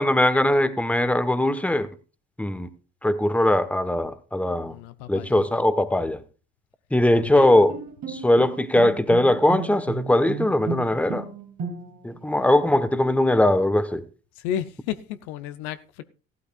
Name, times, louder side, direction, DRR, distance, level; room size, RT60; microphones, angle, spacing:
voice 1, 0.0-1.9 2.4-2.7 3.0-4.7 5.1-6.2 6.9-7.7 8.1-11.3 12.0-14.0, left 1 dB, 5° left, 1.1 m, -20 dB
voice 2, 4.6-5.4 7.1-7.5 14.4-16.0, left 10 dB, 75° left, 0.6 m, -33 dB
Bowed string instrument, 7.3-12.2, right 5 dB, 60° right, 2.0 m, -34 dB
15.0 x 12.0 x 2.4 m
hypercardioid pair, 60°, 32 cm